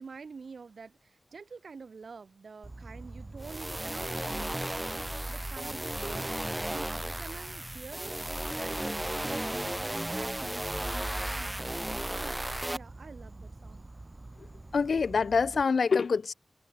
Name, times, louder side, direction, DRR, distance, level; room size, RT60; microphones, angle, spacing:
voice 1, 0.0-11.7 12.1-13.9, right 5 dB, 80° right, 6.1 m, -48 dB
Insect, 2.6-15.6, right 2 dB, 35° right, 1.7 m, -46 dB
sound 1, 3.4-12.8, right 1 dB, 15° right, 0.5 m, -34 dB
voice 2, 14.7-16.3, left 5 dB, 85° left, 0.3 m, -26 dB
wide cardioid pair, 70°, 0 cm